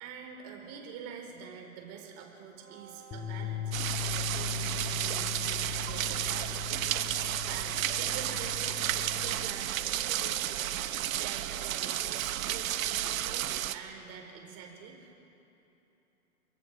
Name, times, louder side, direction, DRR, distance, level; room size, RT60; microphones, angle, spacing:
voice 1, 0.0-10.7 11.2-15.1, right 7 dB, 40° right, 2 dB, 4.7 m, -46 dB
sound 1, 2.5-4.7 7.9-11.1, right 8 dB, 85° right, 2.7 m, -55 dB
sound 2, 3.1-9.4, left 10 dB, 20° left, 2.5 m, -39 dB
sound 3, 3.7-13.8, right 12 dB, 65° right, 1.1 m, -32 dB
30.0 x 22.0 x 4.9 m, 2.9 s
hypercardioid pair, 125°, 43 cm